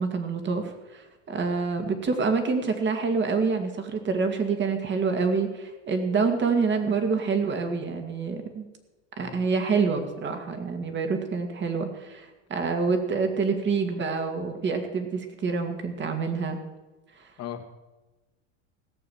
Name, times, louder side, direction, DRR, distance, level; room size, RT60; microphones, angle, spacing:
voice 1, 0.0-8.7 9.2-16.6, right 4 dB, 30° right, 6 dB, 2.3 m, -27 dB
voice 2, 1.8-1.9 9.2-9.4 17.4-17.7, left 10 dB, 45° left, 5 dB, 1.8 m, -38 dB
17.0 x 6.9 x 7.2 m, 1.1 s
hypercardioid pair, 100°, 36 cm